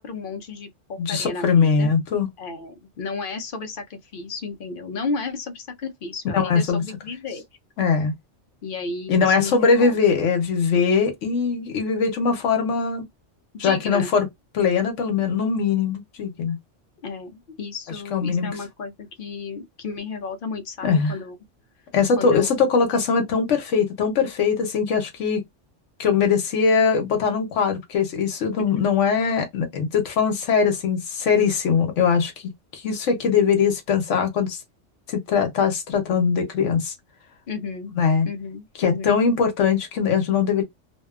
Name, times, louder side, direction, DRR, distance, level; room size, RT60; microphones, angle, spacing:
voice 1, 0.0-1.9 2.4-7.4 8.6-10.0 13.5-14.1 17.0-21.4 22.2-22.5 28.6-28.8 37.5-37.9 38.2-39.2, left 4 dB, 55° left, 0.6 m, -33 dB
voice 2, 1.0-2.3 6.3-6.8 7.8-8.1 9.1-13.0 13.6-14.3 14.5-16.6 18.1-18.5 20.8-21.1 21.9-25.4 26.0-34.6 35.1-36.9 38.0-38.3 38.8-40.6, left 6 dB, 80° left, 1.1 m, -21 dB
2.6 x 2.2 x 2.3 m
omnidirectional pair, 1.2 m